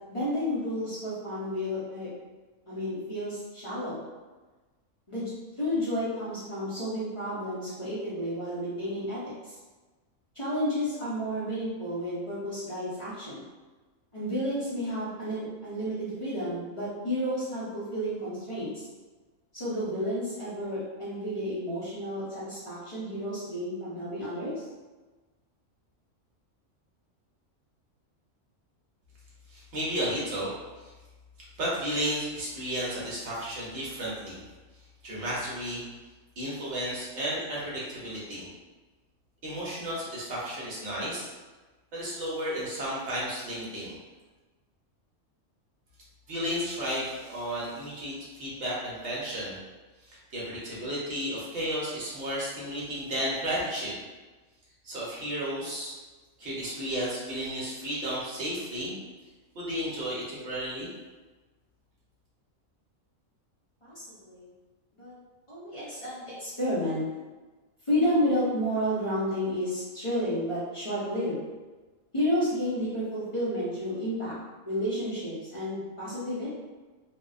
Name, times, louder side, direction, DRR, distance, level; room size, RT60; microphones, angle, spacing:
voice 1, 0.1-2.1 2.7-4.0 5.1-5.3 5.6-9.5 10.3-13.4 14.1-18.9 19.5-24.6 63.8-64.5 65.0-65.1 65.5-67.0 67.9-71.4 72.1-74.3 74.6-76.5, equal, 35° left, -11 dB, 0.5 m, -31 dB
voice 2, 29.5-30.9 31.6-34.4 35.0-35.8 36.4-38.5 39.4-41.3 41.9-44.0 46.3-49.6 50.0-54.0 54.8-55.9 56.4-58.9 59.5-60.9, equal, 60° right, -7 dB, 1.1 m, -33 dB
2.6 x 2.1 x 2.4 m, 1.2 s
omnidirectional pair, 1.4 m